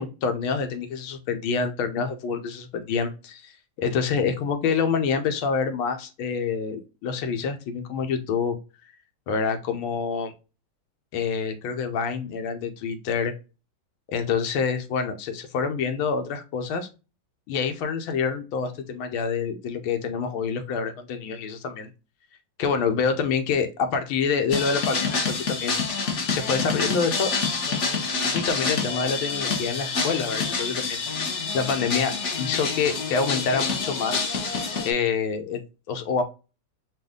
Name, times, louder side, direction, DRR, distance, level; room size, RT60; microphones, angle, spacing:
voice 1, 0.0-3.5 3.8-8.6 9.3-10.3 11.1-13.3 14.1-16.9 17.5-21.9 22.6-25.8 26.3-27.3 28.3-31.0 31.5-34.3 34.8-35.6 35.9-36.2, left 5 dB, 90° left, 7 dB, 1.6 m, -27 dB
sound 1, 24.5-34.9, left 4 dB, 50° left, 1.0 m, -27 dB
5.2 x 2.5 x 3.6 m, 0.31 s
omnidirectional pair, 2.2 m